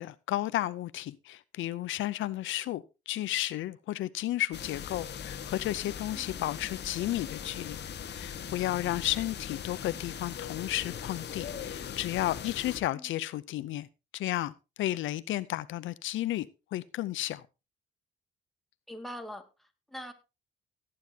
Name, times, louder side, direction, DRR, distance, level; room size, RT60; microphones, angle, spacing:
voice 1, 0.0-7.8 8.1-13.9 14.1-14.5 14.8-16.5 16.7-17.4, left 14 dB, 80° left, 0.6 m, -33 dB
sound 1, 4.5-12.8, left 8 dB, 60° left, 1.5 m, -40 dB
voice 2, 18.9-20.1, equal, ahead, 2.1 m, -43 dB
17.0 x 9.6 x 2.8 m
cardioid pair, 90°, 20 cm